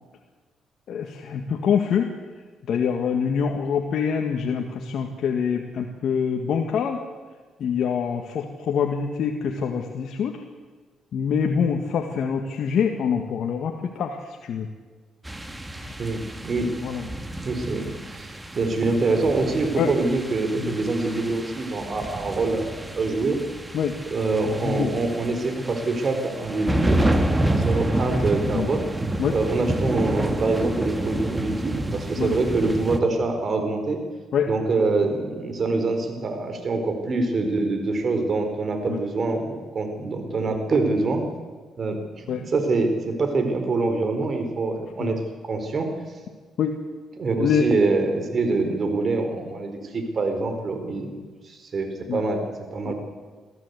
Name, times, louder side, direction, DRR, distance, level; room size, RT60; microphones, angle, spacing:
voice 1, 0.9-2.1 2.7-7.0 7.6-10.4 11.1-14.7 15.8-15.9 16.8-17.1 19.8-19.9 20.6-20.7 23.7-23.9 24.6-24.9 28.5-28.7 29.2-29.3 32.2-32.3 34.3-34.5 38.9-39.0 42.3-42.4 45.0-45.1 46.6-46.8 47.4-47.6 52.1-52.2 52.8-52.9, left 7 dB, 65° left, 3 dB, 1.7 m, -25 dB
sound 1, 15.2-33.0, right 1 dB, 15° right, 1.9 m, -29 dB
voice 2, 16.0-16.7 17.4-22.7 23.0-23.4 24.0-28.8 29.3-34.0 34.5-41.2 41.8-45.9 47.2-51.2 51.4-52.4 52.7-52.9, right 3 dB, 45° right, 6 dB, 4.2 m, -25 dB
23.5 x 14.5 x 8.2 m, 1.4 s
cardioid pair, 90°, 0 cm